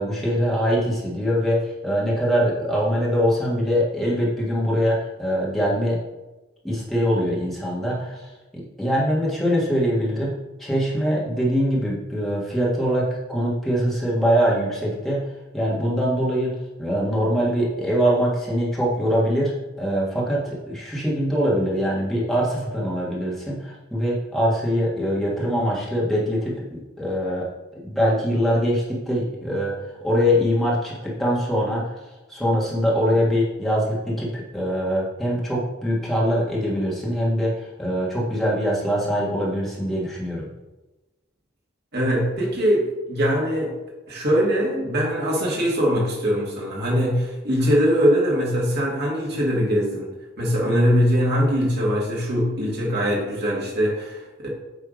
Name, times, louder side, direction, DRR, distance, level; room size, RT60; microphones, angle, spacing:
voice 1, 0.0-6.0 6.6-15.3 15.5-27.5 27.8-29.7 30.0-32.0 32.3-40.5, equal, ahead, -6 dB, 1.7 m, -23 dB
voice 2, 41.9-43.8 44.1-50.1 50.4-54.5, equal, 50° right, -3 dB, 2.1 m, -22 dB
8.2 x 3.4 x 5.1 m, 1.1 s
head